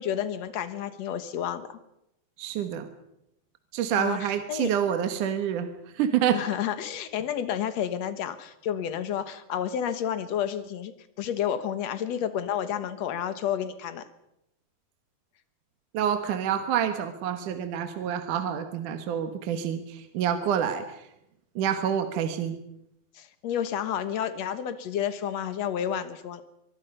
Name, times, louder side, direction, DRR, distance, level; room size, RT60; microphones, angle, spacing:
voice 1, 0.0-1.8 3.9-4.7 6.3-10.9 11.2-14.1 23.2-26.4, left 9 dB, 60° left, 12 dB, 1.9 m, -30 dB
voice 2, 2.4-2.9 3.7-5.7 5.9-6.4 15.9-21.0 21.6-22.6, right 9 dB, 60° right, 8 dB, 2.6 m, -27 dB
23.5 x 23.5 x 5.5 m, 0.81 s
omnidirectional pair, 4.5 m